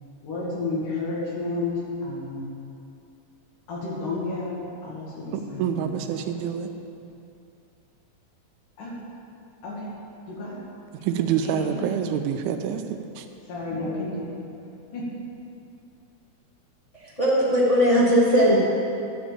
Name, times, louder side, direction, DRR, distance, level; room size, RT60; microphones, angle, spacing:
voice 1, 0.2-1.7 2.0-2.4 3.7-5.9 6.3-6.4 8.8-9.0 9.6-9.9 10.3-10.6 11.4-11.9 13.5-14.4 14.9-15.1, left 2 dB, 90° left, -5 dB, 3.6 m, -31 dB
voice 2, 5.6-6.7 11.0-13.3, right 8 dB, 85° right, 5 dB, 2.1 m, -27 dB
voice 3, 16.9-18.6, equal, 20° left, -6 dB, 1.1 m, -19 dB
11.0 x 5.2 x 7.5 m, 2.6 s
omnidirectional pair, 3.6 m